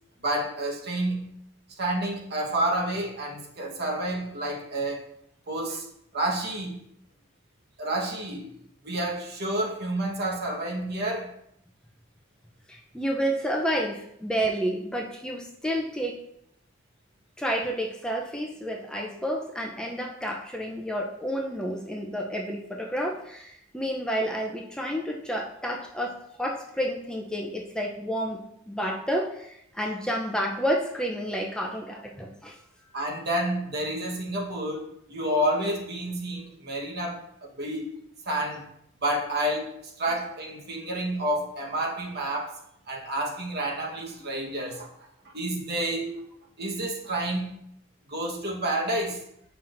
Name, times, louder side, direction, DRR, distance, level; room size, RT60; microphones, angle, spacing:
voice 1, 0.2-1.4 1.8-5.0 5.5-5.9 6.1-6.8 7.8-8.6 8.8-11.3 32.9-38.0 38.3-38.7 39.0-42.6 42.9-44.9 45.3-46.2 46.6-47.7 48.1-49.2, right 1 dB, 55° right, 0 dB, 1.2 m, -29 dB
voice 2, 12.7-16.2 17.4-28.4 28.7-32.9, equal, 5° left, -1 dB, 0.5 m, -30 dB
7.5 x 5.7 x 2.6 m, 0.74 s
head